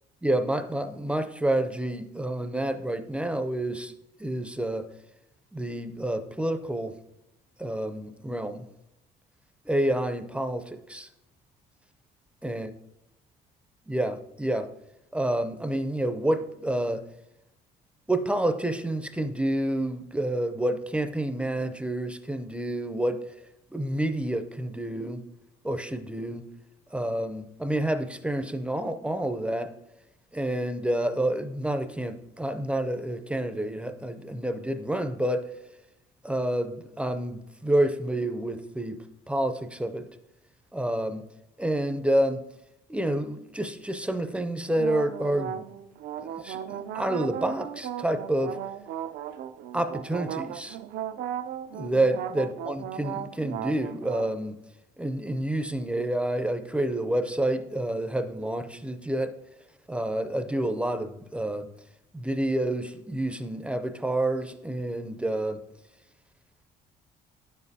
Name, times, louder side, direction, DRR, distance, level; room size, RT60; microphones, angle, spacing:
voice 1, 0.2-3.9 4.2-4.9 5.5-7.0 7.6-8.7 9.7-11.1 12.4-12.7 13.9-14.7 15.1-17.0 18.1-23.2 23.7-25.2 25.6-26.4 26.9-29.7 30.3-35.5 36.2-40.1 40.7-41.2 41.6-42.4 42.9-45.6 46.2-48.6 49.7-50.8 51.7-54.6 55.0-59.3 59.9-61.7 62.1-65.6, right 1 dB, 5° right, 9 dB, 0.4 m, -28 dB
sound 1, 44.7-54.3, right 10 dB, 75° right, 0.4 m, -36 dB
9.0 x 7.2 x 2.7 m, 0.86 s
cardioid pair, 110°, 17 cm